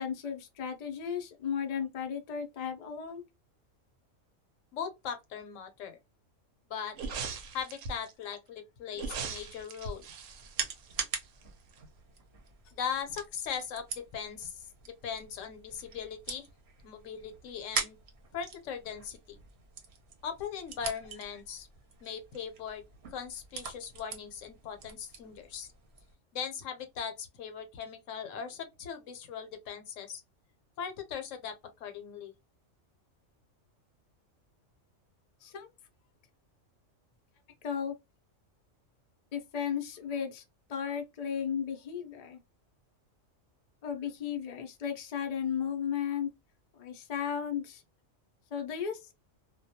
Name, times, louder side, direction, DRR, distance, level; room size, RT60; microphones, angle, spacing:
voice 1, 0.0-3.3 35.4-35.7 37.6-37.9 39.3-40.4 40.7-42.4 43.8-46.3 46.7-47.8 48.5-49.1, left 8 dB, 50° left, 0.5 m, -35 dB
voice 2, 4.7-6.0 6.7-6.9 7.5-10.0 12.7-16.5 16.8-18.0 18.3-19.4 20.2-21.7 22.0-22.8 23.1-25.7 26.3-30.2 30.8-32.3, left 7 dB, 75° left, 1.0 m, -39 dB
sound 1, 6.9-8.1 8.9-11.4 11.7-11.8, right 5 dB, 85° right, 1.0 m, -40 dB
sound 2, 9.7-26.1, right 5 dB, 60° right, 0.9 m, -43 dB
2.3 x 2.2 x 2.7 m
omnidirectional pair, 1.3 m